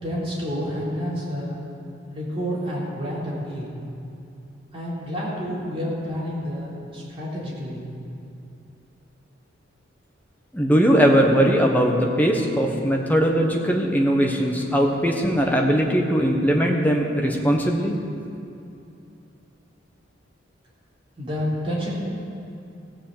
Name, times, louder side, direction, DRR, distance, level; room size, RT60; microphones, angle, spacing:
voice 1, 0.0-1.6 2.1-3.8 4.7-7.9 21.2-22.0, equal, 30° right, -7 dB, 3.6 m, -29 dB
voice 2, 10.5-18.0, equal, 10° left, 0 dB, 1.2 m, -20 dB
16.0 x 6.5 x 7.9 m, 2.7 s
head